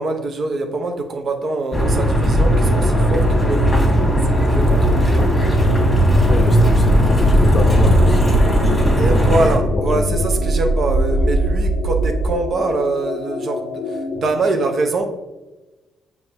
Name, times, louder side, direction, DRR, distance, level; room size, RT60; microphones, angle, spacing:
voice 1, 0.0-3.8 4.4-5.3 9.0-15.1, right 2 dB, 50° right, 1.0 m, -24 dB
sound 1, 1.7-9.6, equal, 10° left, 2.1 m, -16 dB
sound 2, 2.5-14.4, left 4 dB, 75° left, 0.6 m, -29 dB
sound 3, 3.9-12.3, right 2 dB, 85° right, 0.6 m, -21 dB
voice 2, 6.1-8.4 9.0-10.2, left 4 dB, 40° left, 0.6 m, -25 dB
7.0 x 4.1 x 3.6 m
cardioid pair, 90°, 0 cm